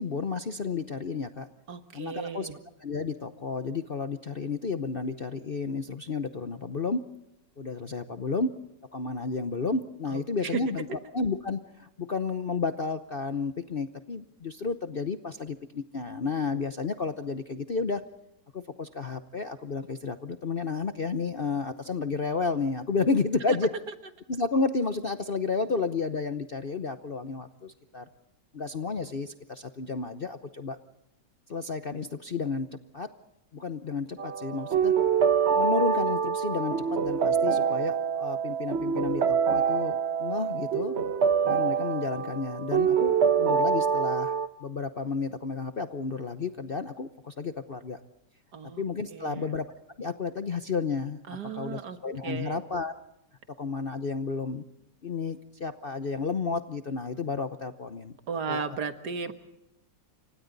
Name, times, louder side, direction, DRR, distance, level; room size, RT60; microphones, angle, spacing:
voice 1, 0.0-1.5 1.9-2.5 2.8-7.0 7.6-8.5 8.9-10.9 11.1-18.0 18.5-23.7 24.3-28.1 28.5-30.8 31.5-32.7 32.9-33.1 33.5-34.9 35.5-41.0 41.4-48.0 48.8-49.6 50.0-51.2 51.5-52.9 53.6-54.6 55.0-58.1 58.5-58.8, left 4 dB, 45° left, 9 dB, 0.7 m, -31 dB
voice 2, 1.7-2.6 10.1-10.6 10.9-11.0 23.5-23.6 48.5-48.8 49.1-49.5 51.3-52.0 52.2-52.6 58.3-59.3, right 6 dB, 60° right, 8 dB, 2.1 m, -35 dB
sound 1, 34.2-44.5, right 7 dB, 45° right, 1.1 m, -25 dB
30.0 x 25.5 x 4.0 m, 0.83 s
omnidirectional pair, 2.0 m